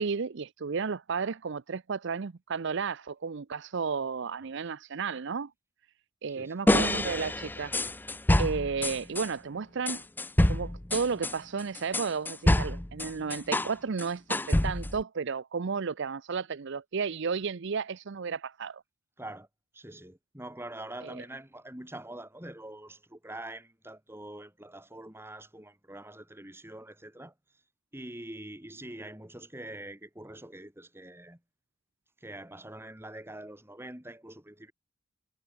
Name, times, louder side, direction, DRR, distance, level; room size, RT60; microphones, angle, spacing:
voice 1, 0.0-5.5 6.2-7.8 8.4-10.0 10.5-18.8 21.0-21.2, right 5 dB, 60° right, 0.6 m, -33 dB
sound 1, 6.7-9.3 9.9-13.7 14.0-15.0, left 1 dB, 10° left, 0.6 m, -27 dB
voice 2, 19.2-19.5 19.7-27.3 27.9-31.4 32.2-34.7, right 1 dB, 10° right, 3.0 m, -44 dB
head